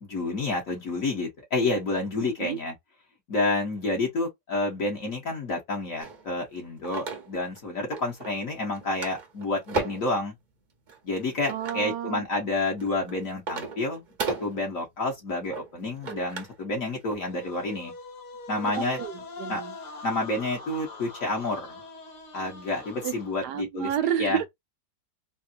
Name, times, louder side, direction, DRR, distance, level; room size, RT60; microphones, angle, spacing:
voice 1, 0.0-2.7 3.3-10.3 11.0-14.0 14.4-17.9 18.5-19.0 19.5-19.6 20.0-21.8 22.3-23.9 24.2-24.4, left 2 dB, 55° left, 1.5 m, -29 dB
voice 2, 2.2-2.6 11.5-12.3 18.8-19.7 23.0-23.1 23.4-24.5, right 10 dB, 80° right, 1.2 m, -30 dB
sound 1, 6.0-7.6 7.9-8.5 8.7-10.2 10.9-11.9 12.5-16.6 16.9-17.2, right 4 dB, 40° right, 0.6 m, -35 dB
sound 2, 17.2-23.6, left 3 dB, 75° left, 1.9 m, -43 dB
4.1 x 2.1 x 2.5 m
omnidirectional pair, 1.8 m